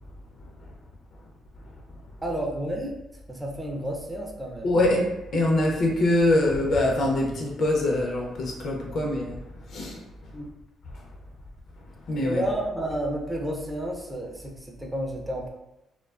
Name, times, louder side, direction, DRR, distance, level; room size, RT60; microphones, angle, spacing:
voice 1, 2.2-3.0 3.3-4.8 10.3-10.5 12.3-15.5, right 1 dB, 10° right, 0 dB, 0.4 m, -31 dB
voice 2, 4.6-9.4 9.7-10.0 12.1-12.4, left 1 dB, 60° left, -1 dB, 0.6 m, -24 dB
2.3 x 2.2 x 2.3 m, 0.93 s
cardioid pair, 90°, 0 cm